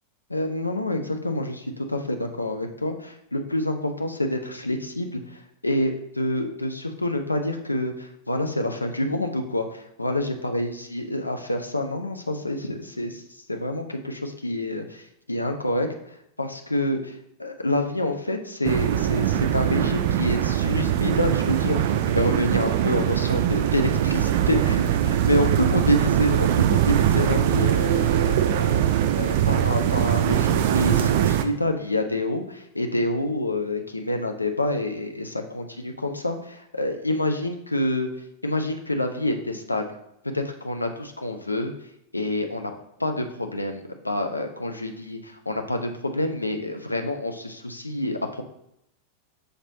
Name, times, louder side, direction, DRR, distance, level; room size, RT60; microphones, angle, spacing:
voice 1, 0.3-13.2 13.5-15.0 15.3-15.9 16.4-38.1 38.4-39.9 40.2-41.7 42.1-42.7 43.0-48.4, left 1 dB, 85° left, 5 dB, 0.4 m, -27 dB
sound 1, 18.6-31.4, right 11 dB, 50° right, 0.3 m, -22 dB
6.4 x 3.0 x 2.7 m, 0.78 s
figure-of-eight pair, 90°, 0 cm